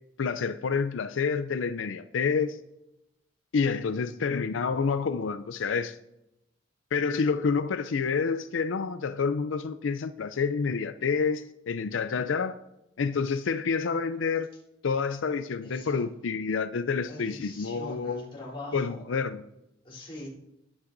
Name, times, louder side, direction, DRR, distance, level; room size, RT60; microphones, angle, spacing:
voice 1, 0.2-2.6 3.5-6.0 6.9-12.6 13.0-14.5 14.8-18.3 18.7-19.4, left 5 dB, 90° left, 0.5 m, -28 dB
voice 2, 15.6-16.1 17.1-19.0 19.8-20.3, left 1 dB, 30° left, 3.5 m, -42 dB
19.0 x 8.7 x 2.6 m
head